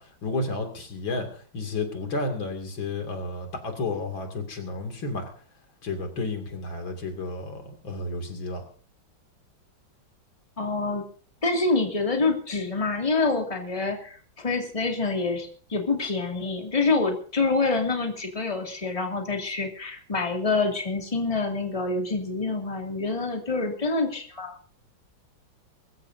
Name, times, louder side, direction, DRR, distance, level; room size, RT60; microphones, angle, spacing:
voice 1, 0.0-5.3 5.8-8.7, left 3 dB, 85° left, 4 dB, 3.4 m, -32 dB
voice 2, 10.6-11.0 11.4-24.5, left 3 dB, 15° left, 1 dB, 2.4 m, -26 dB
23.0 x 14.5 x 2.7 m, 0.43 s
omnidirectional pair, 2.1 m